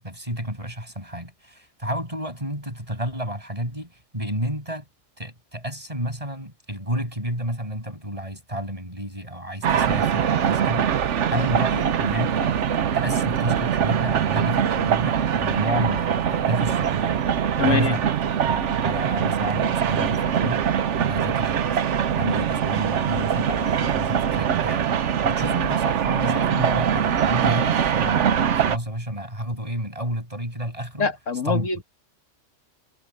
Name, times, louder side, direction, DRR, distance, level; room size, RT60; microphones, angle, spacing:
voice 1, 0.0-4.8 5.2-12.6 12.9-17.2 17.6-18.1 18.5-21.8 22.1-24.9 25.2-31.1 31.4-31.7, right 1 dB, 25° right, 8.0 m, -30 dB
sound 1, 9.6-28.8, right 8 dB, 65° right, 1.1 m, -23 dB
voice 2, 17.6-18.0 31.0-31.8, left 5 dB, 70° left, 1.8 m, -24 dB
omnidirectional pair, 1.4 m